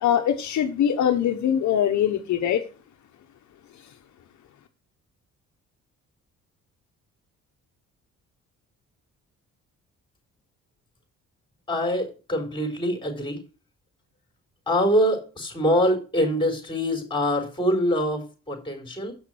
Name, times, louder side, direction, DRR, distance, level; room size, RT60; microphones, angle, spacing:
voice 1, 0.0-2.6, left 9 dB, 70° left, 5 dB, 1.1 m, -22 dB
voice 2, 11.7-13.4 14.7-19.1, equal, 15° left, 3 dB, 4.2 m, -24 dB
8.0 x 5.9 x 6.2 m, 0.34 s
cardioid pair, 90°, 30 cm